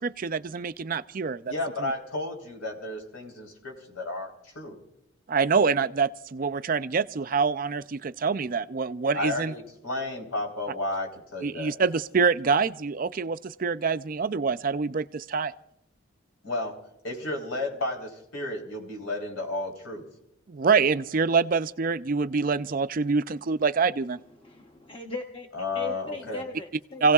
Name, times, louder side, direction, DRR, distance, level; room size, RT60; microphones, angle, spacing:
voice 1, 0.0-1.5 1.8-1.9 5.3-9.5 11.4-15.5 20.5-24.2 27.0-27.1, right 5 dB, 40° right, 12 dB, 0.4 m, -25 dB
voice 2, 1.5-4.8 9.1-11.7 16.4-16.8 17.0-20.0 25.5-26.4, left 2 dB, 85° left, 2 dB, 3.8 m, -32 dB
voice 3, 24.4-25.5 25.7-27.0, left 3 dB, 25° left, 2 dB, 0.9 m, -38 dB
29.5 x 16.5 x 2.4 m, 0.81 s
head